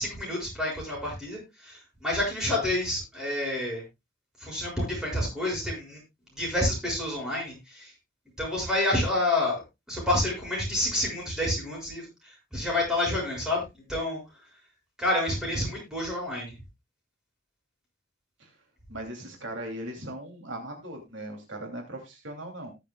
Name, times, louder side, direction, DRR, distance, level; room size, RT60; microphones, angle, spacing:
voice 1, 0.0-3.8 4.4-6.0 6.3-7.9 8.4-9.6 9.9-14.2 15.0-16.6, left 1 dB, 5° right, -3 dB, 6.5 m, -29 dB
voice 2, 18.9-22.7, right 1 dB, 70° right, 2 dB, 2.8 m, -38 dB
19.0 x 7.3 x 2.3 m, 0.23 s
head